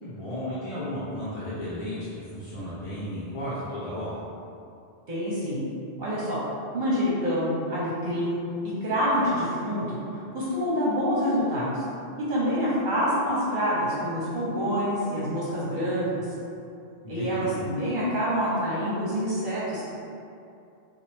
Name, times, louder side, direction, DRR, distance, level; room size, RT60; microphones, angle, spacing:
voice 1, 0.0-4.1 17.0-17.6, left 1 dB, 35° left, -12 dB, 0.8 m, -34 dB
voice 2, 5.1-5.7 6.0-6.4 6.7-8.4 8.8-10.0 10.3-11.8 12.2-16.2 17.1-19.9, equal, 50° right, -8 dB, 1.0 m, -26 dB
5.8 x 2.4 x 3.5 m, 2.6 s
omnidirectional pair, 1.1 m